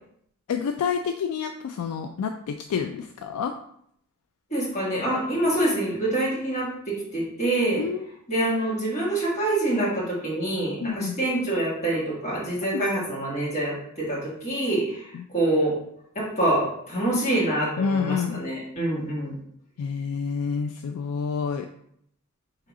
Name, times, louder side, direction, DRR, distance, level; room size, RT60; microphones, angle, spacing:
voice 1, 0.5-3.5 7.8-8.1 10.8-11.2 12.7-12.8 15.1-15.2 17.8-18.4 19.8-21.7, left 6 dB, 90° left, 6 dB, 0.3 m, -28 dB
voice 2, 4.5-7.8 8.3-15.8 16.2-19.3, right 1 dB, 30° left, -6 dB, 1.7 m, -26 dB
3.8 x 2.9 x 4.7 m, 0.69 s
head